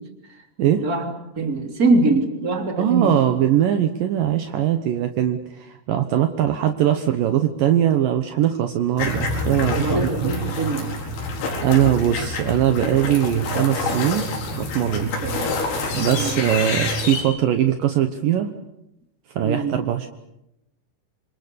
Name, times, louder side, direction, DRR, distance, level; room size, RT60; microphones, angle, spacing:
voice 1, 0.6-3.2 9.7-10.9 15.2-15.6 16.1-16.4 19.4-19.8, right 3 dB, 20° right, 4 dB, 3.0 m, -23 dB
voice 2, 2.8-10.3 11.3-11.4 11.6-14.3 14.6-15.1 15.9-18.5 19.4-20.1, right 11 dB, 75° right, 7 dB, 2.0 m, -21 dB
sound 1, 9.0-17.2, left 2 dB, 85° left, 7.3 m, -27 dB
27.5 x 27.0 x 6.9 m, 0.87 s
omnidirectional pair, 5.7 m